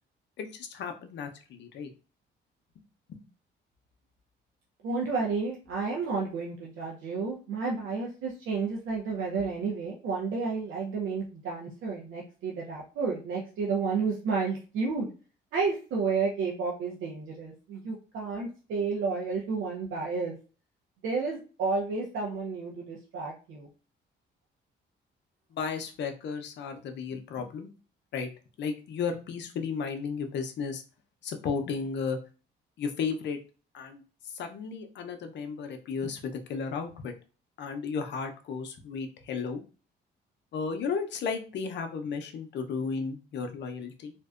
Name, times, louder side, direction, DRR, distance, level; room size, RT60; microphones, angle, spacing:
voice 1, 0.4-1.9 3.1-3.2 25.5-27.7 28.1-28.3 28.6-30.8 31.2-32.2 32.8-33.4 33.7-34.0 34.3-37.1 37.6-39.6 40.5-44.1, left 5 dB, 65° left, 6 dB, 0.5 m, -34 dB
voice 2, 4.8-15.1 15.5-20.4 21.0-23.7, right 4 dB, 80° right, -2 dB, 0.6 m, -31 dB
2.5 x 2.1 x 2.3 m, 0.35 s
cardioid pair, 90°, 20 cm